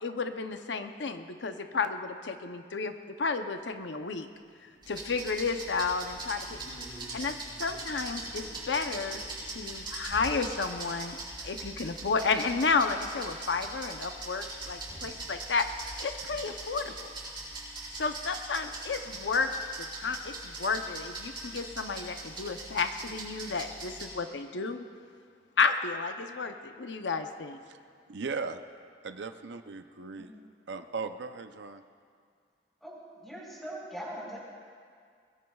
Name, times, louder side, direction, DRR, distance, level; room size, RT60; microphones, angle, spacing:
voice 1, 0.0-2.9 3.2-4.3 4.9-6.6 7.1-11.2 11.4-15.7 16.0-17.1 18.0-19.5 19.8-24.8 25.6-27.6, left 4 dB, 80° left, 7 dB, 0.7 m, -32 dB
sound 1, 3.6-3.7 4.1-5.1 5.5-9.8 12.5-12.6 12.7-12.8 13.9-14.0 14.5-14.6 18.2-18.3 18.5-18.9, equal, 60° right, 4.7 m, -53 dB
sound 2, 4.8-24.1, right 2 dB, 25° right, 4.7 m, -41 dB
voice 2, 28.1-28.6 29.0-30.3 30.7-31.8, right 4 dB, 80° right, 8 dB, 0.6 m, -37 dB
voice 3, 32.8-34.4, right 1 dB, ahead, -4 dB, 4.0 m, -41 dB
21.0 x 21.0 x 2.4 m, 2.1 s
head